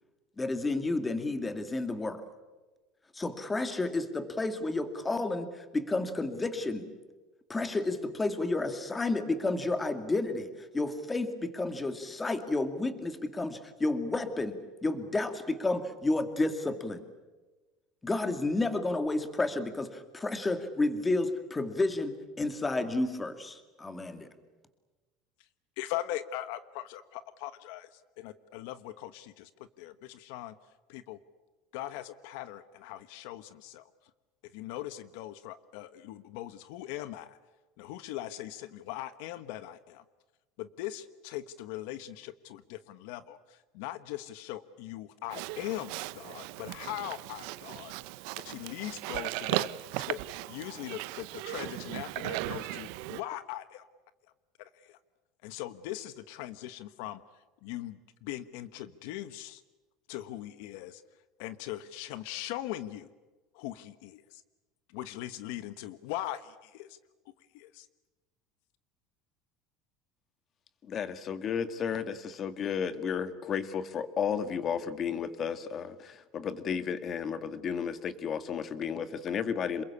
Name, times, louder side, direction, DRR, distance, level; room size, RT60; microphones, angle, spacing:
voice 1, 0.4-2.2 3.1-6.9 7.5-17.0 18.0-24.3, left 2 dB, 15° left, 9 dB, 2.3 m, -31 dB
voice 2, 25.8-30.5 30.9-31.2 31.7-33.9 34.5-37.4 37.8-40.0 40.6-47.9 48.3-49.7 50.0-53.8 54.6-55.0 55.4-57.2 57.6-59.6 60.1-61.0 61.4-63.1 63.5-64.4 64.9-67.0 67.5-67.9, left 14 dB, 75° left, 13 dB, 1.2 m, -40 dB
Livestock farm animals working animals, 45.3-53.2, right 18 dB, 70° right, 0.9 m, -37 dB
voice 3, 70.8-79.8, left 7 dB, 35° left, 12 dB, 1.8 m, -33 dB
27.5 x 22.5 x 8.4 m, 1.2 s
cardioid pair, 145°, 0 cm